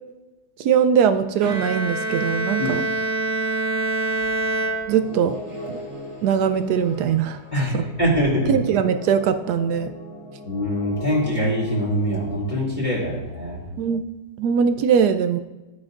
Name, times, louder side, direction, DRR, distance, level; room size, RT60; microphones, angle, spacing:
voice 1, 0.6-2.8 4.9-5.3 5.7-5.8 6.2-7.4 7.7-7.9 8.5-9.9 13.8-14.0 14.4-15.4, right 7 dB, 75° right, 9 dB, 0.9 m, -21 dB
Bowed string instrument, 1.4-5.4, right 2 dB, 55° right, 1.7 m, -26 dB
sound 1, 5.0-12.5, left 1 dB, 15° right, 1.7 m, -38 dB
voice 2, 7.5-8.5 10.4-13.6, equal, 20° left, -7 dB, 2.7 m, -23 dB
13.5 x 9.6 x 2.5 m, 1.1 s
omnidirectional pair, 2.2 m